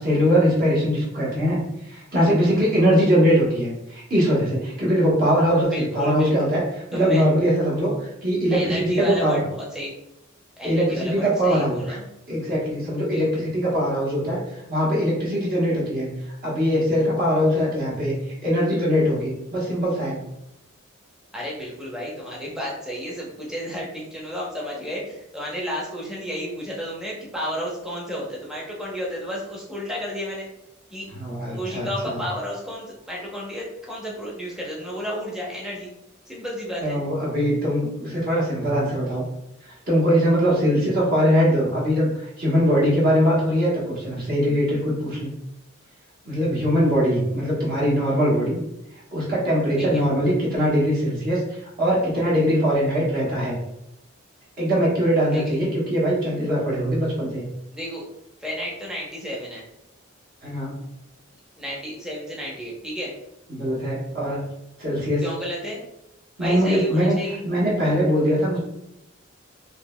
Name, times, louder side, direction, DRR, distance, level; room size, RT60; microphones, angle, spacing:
voice 1, 0.0-6.6 6.9-9.4 10.6-11.8 12.3-14.4 14.7-18.2 18.4-20.2 31.1-32.2 36.8-39.2 39.6-45.3 46.2-48.6 49.1-51.4 51.8-53.6 54.6-57.5 60.4-60.7 63.5-64.4 64.8-65.2 66.4-67.1 67.4-68.6, equal, 45° right, -6 dB, 1.1 m, -21 dB
voice 2, 5.7-6.5 6.9-7.2 8.5-9.9 10.6-12.0 13.0-13.5 21.3-30.5 30.9-31.1 31.6-35.9 36.3-37.0 49.8-50.1 55.3-55.6 57.7-58.0 58.4-59.6 61.6-63.1 65.2-65.8 66.4-67.4, equal, 5° right, -4 dB, 0.7 m, -32 dB
3.8 x 2.8 x 2.2 m, 0.83 s
head